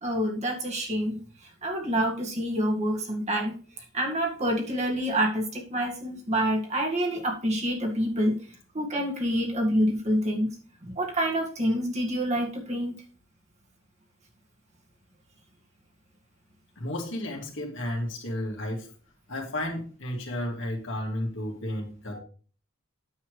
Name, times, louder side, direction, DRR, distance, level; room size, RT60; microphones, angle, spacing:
voice 1, 0.0-8.4 8.7-10.6 10.8-12.9, equal, 35° right, 0 dB, 1.9 m, -27 dB
voice 2, 16.8-18.9 19.3-22.2, left 1 dB, 60° left, 1 dB, 2.5 m, -32 dB
9.6 x 7.3 x 3.2 m, 0.39 s
head